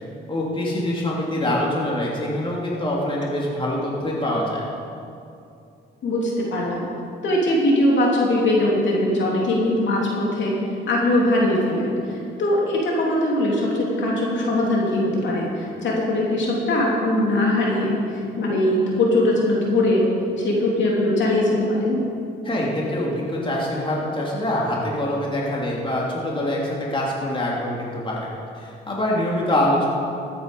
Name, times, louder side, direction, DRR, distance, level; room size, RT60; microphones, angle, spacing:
voice 1, 0.3-4.6 22.4-28.3 28.5-29.9, left 1 dB, 25° left, -4 dB, 2.9 m, -24 dB
voice 2, 6.0-6.9 7.2-10.5 10.9-20.1 20.4-22.0, left 1 dB, 70° left, -3 dB, 2.9 m, -21 dB
14.0 x 8.7 x 5.3 m, 2.6 s
cardioid pair, 90°, 20 cm